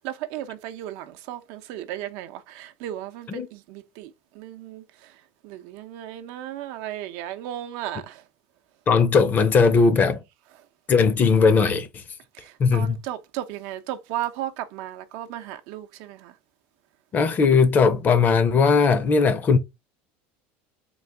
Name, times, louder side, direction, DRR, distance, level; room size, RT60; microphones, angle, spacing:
voice 1, 0.0-5.1 5.4-8.2 12.4-16.3, right 12 dB, 65° right, 0.6 m, -35 dB
voice 2, 8.9-10.2 10.9-12.0 12.6-13.0 17.1-19.6, left 5 dB, 30° left, 0.7 m, -18 dB
3.9 x 2.5 x 3.4 m
supercardioid pair, 125°, 6 cm